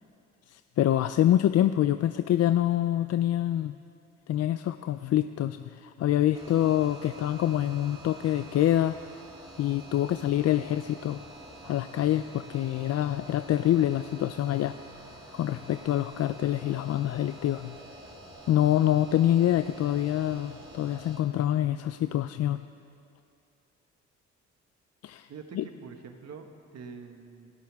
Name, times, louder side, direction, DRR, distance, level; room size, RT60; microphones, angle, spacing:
voice 1, 0.5-3.8 4.3-8.9 9.6-11.2 11.6-14.7 15.3-17.8 18.5-22.6 25.0-25.3 25.6-25.7, left 12 dB, 55° left, 11 dB, 0.5 m, -26 dB
sound 1, 6.3-21.2, right 1 dB, 20° right, 4.7 m, -47 dB
voice 2, 25.3-27.5, right 5 dB, 60° right, 5 dB, 1.6 m, -45 dB
26.0 x 13.0 x 3.5 m, 2.7 s
cardioid pair, 90°, 30 cm